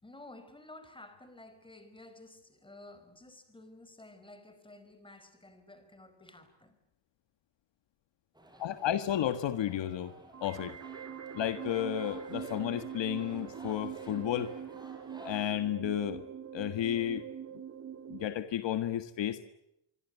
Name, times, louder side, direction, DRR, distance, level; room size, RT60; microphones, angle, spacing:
voice 1, 0.0-6.8, left 2 dB, 10° left, 10 dB, 4.9 m, -53 dB
sound 1, 8.3-15.5, right 1 dB, 10° right, 5.7 m, -54 dB
voice 2, 8.6-10.1 10.4-10.8 11.3-14.5 15.2-16.3 16.5-17.3 18.1-19.4, left 11 dB, 60° left, 11 dB, 1.6 m, -32 dB
sound 2, 10.3-18.3, right 8 dB, 35° right, 1.5 m, -43 dB
26.0 x 25.0 x 8.2 m, 0.82 s
cardioid pair, 140°, 48 cm